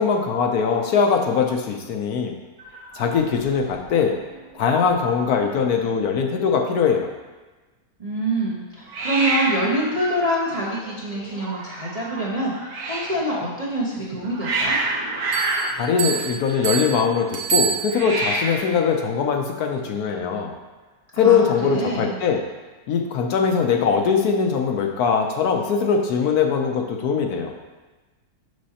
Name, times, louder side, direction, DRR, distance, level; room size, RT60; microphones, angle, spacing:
voice 1, 0.0-2.3 2.9-4.1 4.5-7.1 15.8-20.5 21.1-22.4 22.9-27.5, left 6 dB, 70° left, 2 dB, 1.1 m, -21 dB
Hiss, 2.6-3.9 4.2-4.6 4.9-5.0 5.2-5.9 8.9-13.2 13.9-16.9 17.8-18.8, right 2 dB, 85° right, 1.5 m, -29 dB
voice 2, 8.0-14.8 21.2-22.2, right 1 dB, 35° right, -6 dB, 0.7 m, -26 dB
sound 1, 15.3-18.4, right 7 dB, 50° right, 1.0 m, -27 dB
6.2 x 6.1 x 2.8 m, 1.2 s
omnidirectional pair, 1.7 m